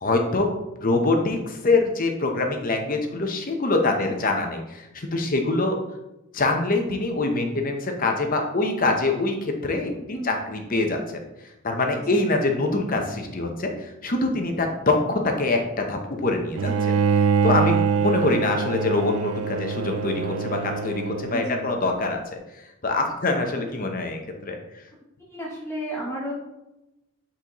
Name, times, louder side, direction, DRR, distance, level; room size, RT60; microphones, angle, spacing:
voice 1, 0.0-0.5 0.8-5.8 6.3-11.0 11.6-16.7 17.4-22.2 22.8-24.6, left 2 dB, 40° left, 3 dB, 0.9 m, -24 dB
voice 2, 9.8-10.4 11.9-12.3 16.6-16.8 21.3-21.7 25.2-26.3, equal, 10° left, -4 dB, 1.0 m, -34 dB
Bowed string instrument, 16.6-21.8, right 6 dB, 75° right, 0.3 m, -24 dB
8.0 x 4.3 x 3.0 m, 0.93 s
head